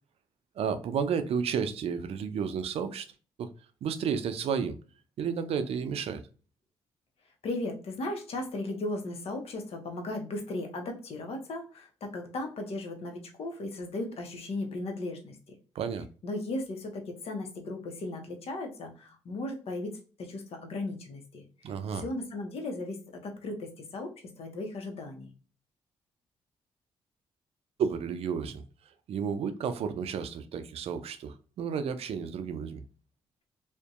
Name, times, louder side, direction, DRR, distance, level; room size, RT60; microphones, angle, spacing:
voice 1, 0.6-3.1 3.4-3.5 3.8-4.8 5.2-6.2 15.8-16.1 21.6-22.0 27.8-28.6 29.1-32.8, right 6 dB, 65° right, 0.4 m, -32 dB
voice 2, 7.4-15.4 16.2-21.4 21.9-24.1 24.4-25.3, left 2 dB, 65° left, 0.7 m, -36 dB
2.6 x 2.1 x 2.3 m
supercardioid pair, 50°, 11 cm